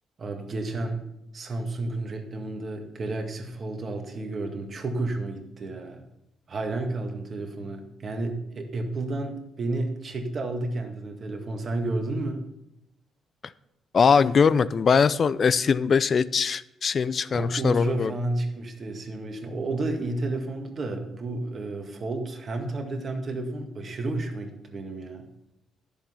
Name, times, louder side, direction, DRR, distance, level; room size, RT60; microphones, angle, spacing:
voice 1, 0.2-1.0 1.3-6.0 6.5-12.4 17.2-25.2, right 2 dB, 45° right, 4 dB, 1.8 m, -31 dB
voice 2, 13.9-18.1, left 6 dB, 45° left, 17 dB, 0.4 m, -21 dB
11.0 x 7.3 x 5.6 m, 0.86 s
cardioid pair, 90°, 0 cm